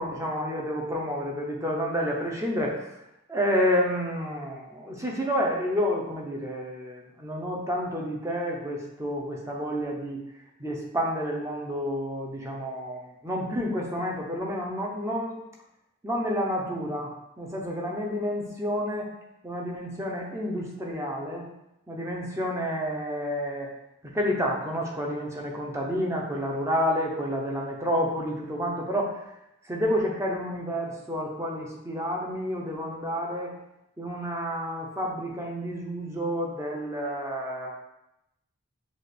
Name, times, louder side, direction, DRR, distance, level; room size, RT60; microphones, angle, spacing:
voice 1, 0.0-2.9 3.3-10.2 10.6-15.4 16.0-19.1 19.4-21.5 21.9-23.7 24.1-29.2 29.7-33.5 34.0-37.7, equal, 15° right, -1 dB, 0.6 m, -29 dB
6.3 x 2.4 x 3.3 m, 0.85 s
head